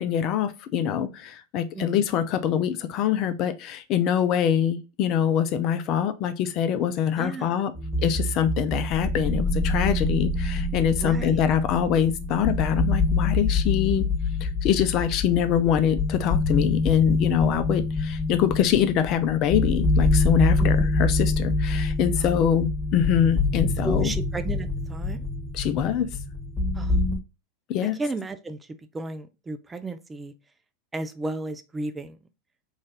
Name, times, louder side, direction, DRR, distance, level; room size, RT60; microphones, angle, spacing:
voice 1, 0.0-7.7 8.0-14.1 14.4-24.1 25.5-26.1 27.7-28.0, left 9 dB, 45° left, 0.5 m, -24 dB
voice 2, 1.7-2.1 7.2-7.5 11.0-11.4 20.6-20.9 22.2-22.4 23.8-25.3 26.7-27.0 27.9-30.3 30.9-32.2, right 2 dB, 15° right, 0.5 m, -34 dB
sound 1, 7.7-27.2, left 2 dB, 20° left, 1.8 m, -25 dB
3.2 x 2.7 x 3.7 m
hypercardioid pair, 95°, 0 cm